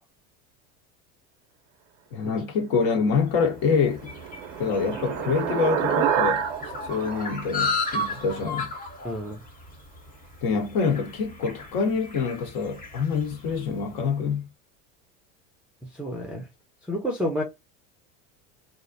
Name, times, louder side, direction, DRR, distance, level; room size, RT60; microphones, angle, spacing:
voice 1, 2.1-4.1 4.6-6.5 6.9-8.7 10.4-14.5, left 5 dB, 60° left, 0.8 m, -26 dB
sound 1, 3.3-13.9, left 2 dB, 20° left, 0.8 m, -35 dB
sound 2, 3.5-8.3, right 9 dB, 80° right, 0.6 m, -29 dB
voice 2, 9.0-9.4 15.8-16.5 16.9-17.4, equal, 5° right, 0.4 m, -29 dB
2.4 x 2.0 x 2.5 m
supercardioid pair, 100°, 38 cm